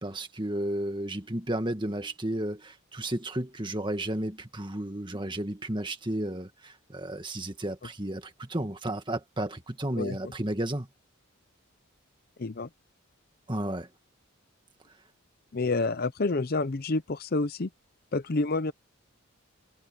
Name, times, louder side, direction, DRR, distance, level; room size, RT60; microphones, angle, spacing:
voice 1, 0.0-10.9 13.5-13.9, right 1 dB, 20° right, 1.8 m, -33 dB
voice 2, 15.5-17.7 18.1-18.7, left 3 dB, 45° left, 0.6 m, -28 dB
head